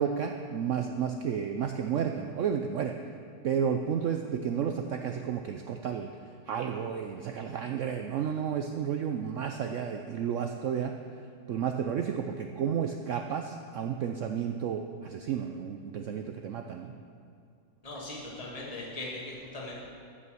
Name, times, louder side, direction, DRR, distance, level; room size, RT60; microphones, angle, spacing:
voice 1, 0.0-3.0 3.4-6.1 6.5-10.9 11.5-16.9, right 7 dB, 80° right, 5 dB, 0.6 m, -32 dB
voice 2, 17.8-19.7, left 2 dB, 20° left, -4 dB, 1.9 m, -39 dB
14.5 x 5.5 x 6.3 m, 2.4 s
omnidirectional pair, 1.9 m